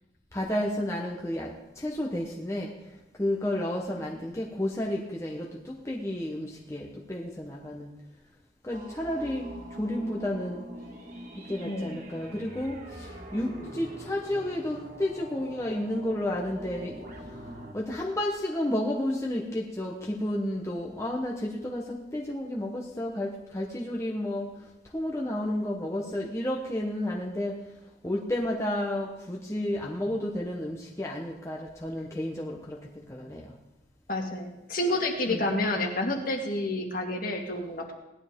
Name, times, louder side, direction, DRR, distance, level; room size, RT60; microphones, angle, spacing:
voice 1, 0.3-2.7 3.2-7.9 8.6-9.5 9.8-10.6 11.5-16.9 17.7-24.5 24.9-27.5 28.0-33.5 35.3-35.4, left 1 dB, 15° left, -2 dB, 1.1 m, -31 dB
sound 1, 8.7-17.7, right 1 dB, 45° right, 2.1 m, -43 dB
voice 2, 11.6-12.0 34.1-37.9, left 1 dB, 45° left, 2 dB, 1.9 m, -29 dB
18.0 x 11.5 x 3.7 m, 0.95 s
head